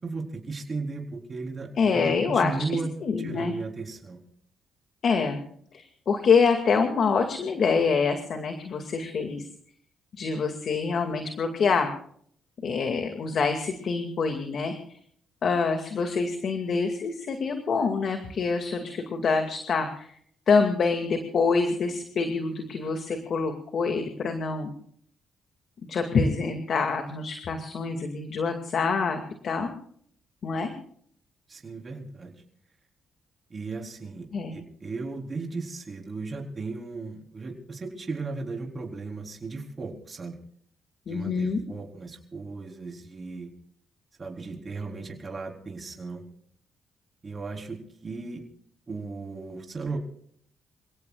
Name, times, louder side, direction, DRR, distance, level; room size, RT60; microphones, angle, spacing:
voice 1, 0.0-2.9 3.2-4.2 31.5-32.3 33.5-34.3 34.5-40.4 41.1-43.5 44.2-46.3 47.2-48.4 48.9-50.0, right 3 dB, 35° right, 1 dB, 4.0 m, -36 dB
voice 2, 1.8-2.6 3.0-3.5 5.0-5.4 5.7-9.4 10.2-11.9 12.6-14.7 15.4-20.1 20.5-24.7 25.9-29.7 30.4-30.7 34.3-34.6 41.1-41.6, left 5 dB, 60° left, 5 dB, 2.3 m, -26 dB
28.5 x 17.5 x 2.4 m, 0.62 s
cardioid pair, 85°, 0 cm